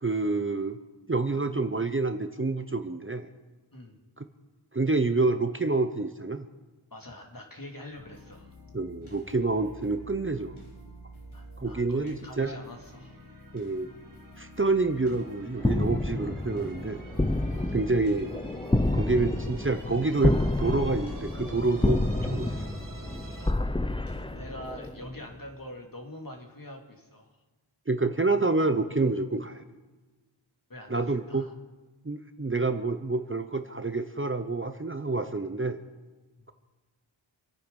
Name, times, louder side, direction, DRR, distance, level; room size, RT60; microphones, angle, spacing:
voice 1, 0.0-0.8 1.1-3.3 4.2-4.3 4.7-6.5 8.7-10.6 11.6-12.6 13.5-13.9 14.4-17.0 17.7-18.3 18.9-22.8 27.9-29.6 30.9-31.4 32.0-35.8, right 3 dB, 25° right, 8 dB, 0.8 m, -28 dB
voice 2, 6.9-8.5 11.3-13.2 17.4-17.8 24.3-27.3 30.7-31.5, left 1 dB, 45° left, 2 dB, 2.6 m, -44 dB
sound 1, 7.9-25.4, equal, 80° left, 4.8 m, -48 dB
sound 2, 12.3-23.5, right 2 dB, 40° right, 1.8 m, -49 dB
sound 3, 15.6-25.1, left 1 dB, 10° left, 0.7 m, -29 dB
26.0 x 9.3 x 5.4 m, 1.2 s
wide cardioid pair, 50°, 48 cm